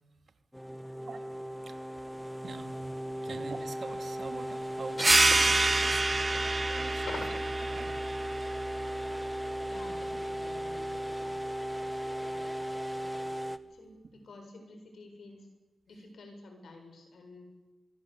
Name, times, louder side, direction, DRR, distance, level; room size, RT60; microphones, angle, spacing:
sound 1, 0.5-13.6, equal, ahead, 1.6 m, -37 dB
voice 1, 2.4-5.0 5.8-6.3 6.7-7.1 7.6-8.1 10.1-10.2 15.9-16.1, right 4 dB, 75° right, 7 dB, 2.6 m, -45 dB
sound 2, 5.0-10.2, right 2 dB, 35° right, 0.9 m, -28 dB
voice 2, 9.6-11.8 12.1-13.4 13.7-13.9 14.2-15.5 15.9-17.5, left 3 dB, 85° left, 4 dB, 7.5 m, -51 dB
25.5 x 23.0 x 8.5 m, 1.1 s
cardioid pair, 60°, 0 cm